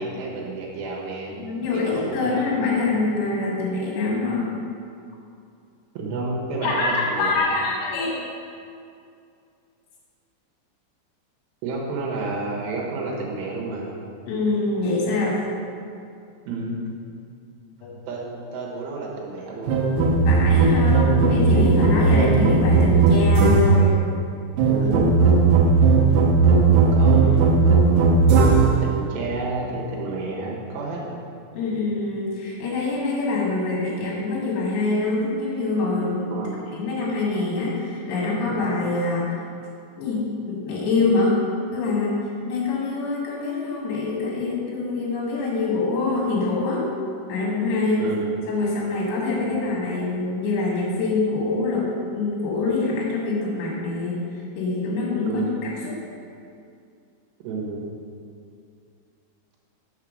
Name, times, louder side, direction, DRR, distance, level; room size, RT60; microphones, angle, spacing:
voice 1, 0.0-1.4 1.7-3.0 5.9-7.4 11.6-14.0 16.5-16.8 18.1-19.8 24.7-25.2 26.9-27.9 28.8-31.2 36.3-36.7 48.0-48.3 49.4-49.6 55.3-55.6 57.4-58.0, right 3 dB, 70° right, -3 dB, 3.0 m, -30 dB
voice 2, 1.4-4.7 6.6-8.2 14.3-15.4 17.8-18.0 20.2-24.0 31.6-36.4 36.7-39.3 40.0-41.4 41.7-46.9 47.3-48.1 48.5-56.0, left 3 dB, 70° left, -4 dB, 3.2 m, -25 dB
sound 1, 19.7-23.9 24.6-28.8, right 4 dB, 85° right, 2.5 m, -17 dB
7.0 x 5.7 x 6.2 m, 2.4 s
omnidirectional pair, 5.7 m